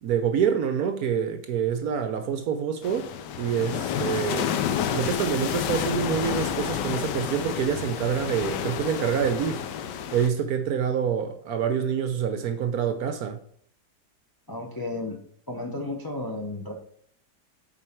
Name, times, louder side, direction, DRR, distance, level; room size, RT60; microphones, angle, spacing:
voice 1, 0.0-3.1 3.4-4.5 4.9-9.6 10.1-13.4, right 7 dB, 65° right, 1.0 m, -26 dB
sound 1, 2.8-10.3, left 8 dB, 75° left, 1.2 m, -30 dB
voice 2, 14.5-15.2 15.5-16.7, left 2 dB, 30° left, 0.4 m, -33 dB
8.1 x 4.6 x 4.5 m
omnidirectional pair, 2.0 m